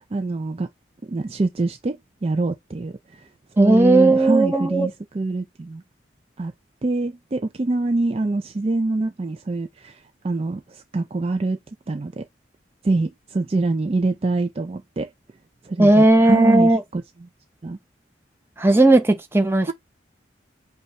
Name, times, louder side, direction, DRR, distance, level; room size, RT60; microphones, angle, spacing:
voice 1, 0.1-0.7 1.0-3.3 3.6-5.8 6.4-6.5 6.8-11.6 11.9-12.3 12.8-15.1 15.6-17.3 17.6-17.8, right 2 dB, 30° right, 0.4 m, -25 dB
voice 2, 3.6-4.9 15.8-16.8 18.6-19.7, right 2 dB, 10° right, 0.7 m, -16 dB
5.3 x 2.3 x 4.2 m
head